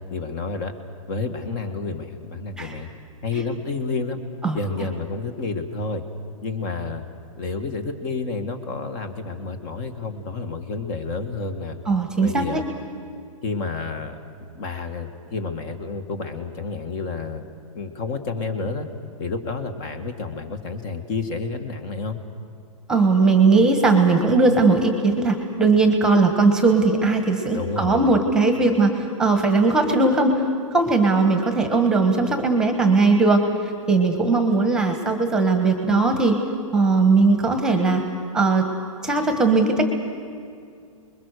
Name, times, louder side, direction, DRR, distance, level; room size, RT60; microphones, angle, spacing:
voice 1, 0.1-0.7 1.1-2.9 3.2-4.2 4.5-6.0 6.4-7.0 7.4-11.8 12.2-12.6 13.4-14.2 14.5-17.4 17.7-18.9 19.2-22.2 27.5-28.2, left 4 dB, 35° left, 8 dB, 1.8 m, -30 dB
voice 2, 11.9-12.6 22.9-30.4 30.7-36.4 36.7-38.0 38.3-38.7 39.0-39.9, right 3 dB, 5° right, 6 dB, 1.5 m, -19 dB
29.5 x 21.5 x 6.8 m, 2.3 s
hypercardioid pair, 155°, 18 cm